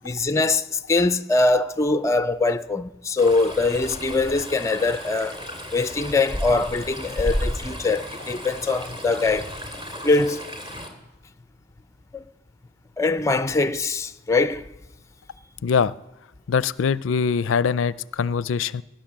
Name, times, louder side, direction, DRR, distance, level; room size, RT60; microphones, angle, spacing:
voice 1, 0.0-5.4 5.7-9.5 10.0-10.5 12.1-12.2 13.0-14.6, left 3 dB, 15° left, 0.5 m, -22 dB
Stream, 3.2-10.9, equal, 25° right, 2.4 m, -33 dB
voice 2, 15.6-15.9 16.5-18.8, left 6 dB, 70° left, 0.4 m, -23 dB
17.5 x 10.5 x 7.4 m
head